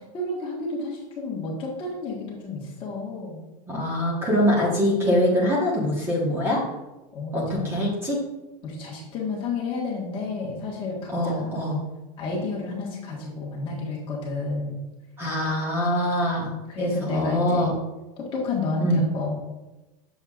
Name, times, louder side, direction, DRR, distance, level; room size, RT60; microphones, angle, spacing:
voice 1, 0.1-3.4 7.1-7.7 8.6-11.5 12.2-14.8 16.7-17.8 18.2-19.4, left 3 dB, 25° left, -3 dB, 1.5 m, -30 dB
voice 2, 3.7-6.6 7.3-8.2 11.1-11.8 15.2-16.5 16.8-17.7 18.8-19.0, equal, 10° right, -4 dB, 1.4 m, -23 dB
7.1 x 7.0 x 2.5 m, 1.0 s
supercardioid pair, 165°, 20 cm